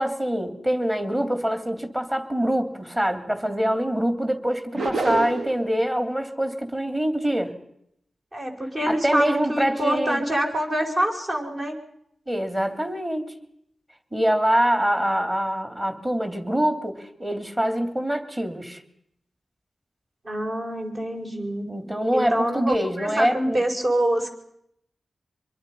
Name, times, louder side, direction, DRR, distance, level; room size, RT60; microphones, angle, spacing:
voice 1, 0.0-7.5 8.8-10.2 12.3-13.3 14.1-18.8 21.7-23.6, equal, 20° right, 7 dB, 3.0 m, -24 dB
sound 1, 4.7-5.7, right 3 dB, 75° right, 1.3 m, -26 dB
voice 2, 8.3-11.8 20.2-21.7 22.1-24.3, right 1 dB, 45° right, 1 dB, 4.9 m, -25 dB
25.0 x 22.5 x 5.5 m, 0.75 s
wide cardioid pair, 85°, 0 cm